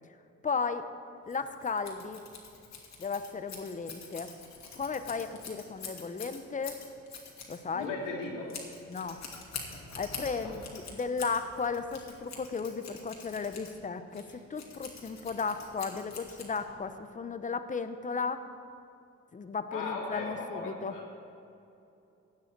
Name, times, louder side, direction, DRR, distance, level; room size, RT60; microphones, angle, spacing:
voice 1, 0.4-0.9 1.3-2.2 3.0-4.3 4.7-6.8 7.5-7.9 8.9-9.2 10.0-18.5 19.3-20.9, left 5 dB, 25° left, 10 dB, 0.8 m, -35 dB
Scissors, 1.3-16.9, left 5 dB, 65° left, 2.4 m, -46 dB
voice 2, 7.7-8.5 10.4-10.6 19.7-21.1, left 3 dB, 90° left, -4 dB, 3.1 m, -37 dB
16.0 x 9.5 x 4.6 m, 2.8 s
cardioid pair, 90°, 30 cm